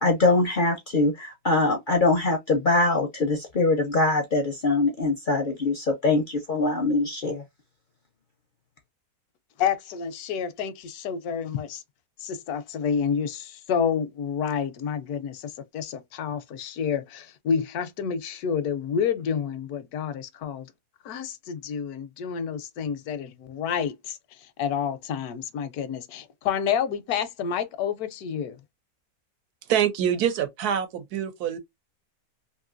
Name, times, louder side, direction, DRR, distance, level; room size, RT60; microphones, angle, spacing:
voice 1, 0.0-7.4, left 2 dB, 55° left, 0.5 m, -23 dB
voice 2, 9.6-11.8 12.2-20.6 21.0-24.2 24.6-28.6, left 7 dB, 80° left, 1.1 m, -29 dB
voice 3, 29.7-31.6, right 9 dB, 85° right, 1.2 m, -25 dB
3.0 x 2.7 x 2.4 m
omnidirectional pair, 1.6 m